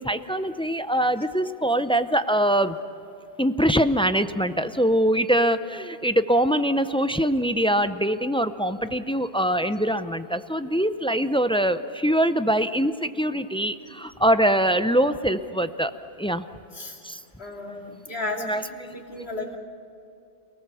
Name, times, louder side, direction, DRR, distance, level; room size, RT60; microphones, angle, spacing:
voice 1, 0.0-2.8 3.4-15.9 16.2-16.4 17.0-17.2 17.7-18.0 18.5-19.0, equal, 10° left, 11 dB, 0.4 m, -23 dB
voice 2, 17.4-19.5, left 2 dB, 75° left, 0 dB, 2.9 m, -34 dB
28.0 x 18.5 x 7.0 m, 2.6 s
omnidirectional pair, 1.1 m